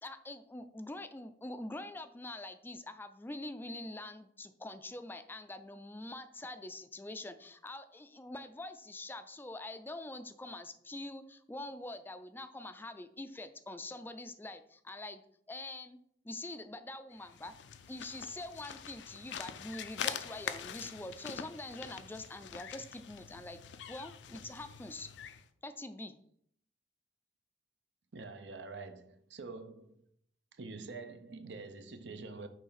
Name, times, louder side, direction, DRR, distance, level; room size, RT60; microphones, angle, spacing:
voice 1, 0.0-15.2 15.5-16.0 16.2-17.5 17.9-23.6 23.9-25.1 25.6-26.2, left 2 dB, 10° left, 0.3 m, -45 dB
sound 1, 17.2-25.5, left 8 dB, 90° left, 0.5 m, -44 dB
voice 2, 28.1-30.0 30.6-32.5, right 3 dB, 80° right, 0.7 m, -46 dB
6.3 x 3.3 x 5.6 m
head